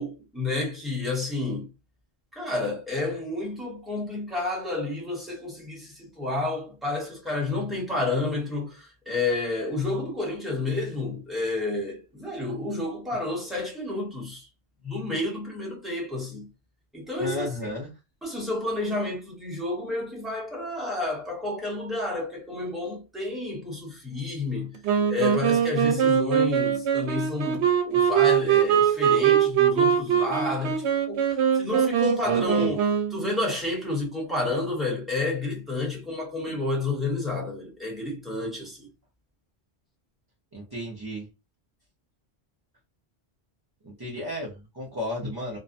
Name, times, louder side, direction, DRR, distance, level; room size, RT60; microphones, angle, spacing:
voice 1, 0.0-1.7 2.3-14.5 14.8-16.5 16.9-17.7 18.2-24.8 25.1-32.9 33.1-38.9, left 2 dB, ahead, 0.9 m, -30 dB
voice 2, 17.2-17.9 32.0-32.7 40.5-41.3 43.8-45.6, left 1 dB, 30° right, 0.5 m, -34 dB
Wind instrument woodwind instrument, 24.8-33.3, right 8 dB, 80° right, 0.9 m, -22 dB
2.6 x 2.1 x 2.5 m
omnidirectional pair, 1.1 m